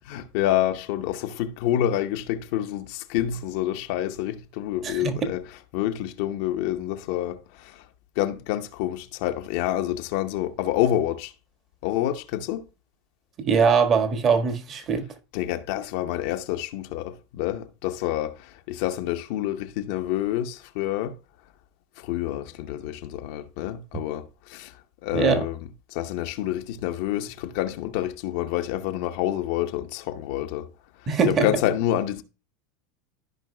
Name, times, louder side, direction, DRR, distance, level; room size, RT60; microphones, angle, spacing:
voice 1, 0.0-7.9 8.2-11.3 11.8-12.7 15.3-21.2 22.0-25.6 25.9-30.7 31.0-32.2, left 12 dB, 65° left, 0.7 m, -28 dB
voice 2, 13.4-15.0 25.1-25.4 31.1-31.5, right 6 dB, 40° right, 1.5 m, -21 dB
13.5 x 5.3 x 2.2 m
hypercardioid pair, 95°, 0 cm